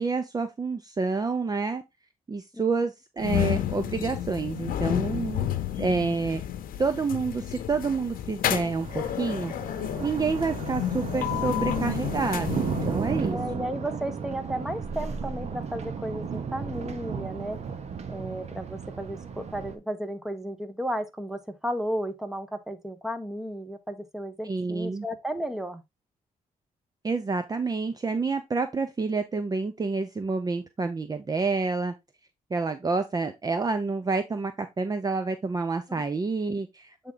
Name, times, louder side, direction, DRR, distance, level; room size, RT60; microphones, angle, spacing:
voice 1, 0.0-1.8 2.3-5.5 5.8-6.4 6.8-9.5 10.0-13.4 24.4-25.1 27.0-31.9 32.5-37.1, right 4 dB, 25° right, 0.7 m, -28 dB
sound 1, 3.2-13.4, left 11 dB, 85° left, 0.7 m, -31 dB
Thunder, 8.6-19.7, right 6 dB, 50° right, 1.1 m, -34 dB
voice 2, 13.3-17.6 18.1-25.8 35.9-36.0 37.0-37.1, equal, 5° right, 1.1 m, -34 dB
8.0 x 3.7 x 3.9 m
cardioid pair, 110°, 14 cm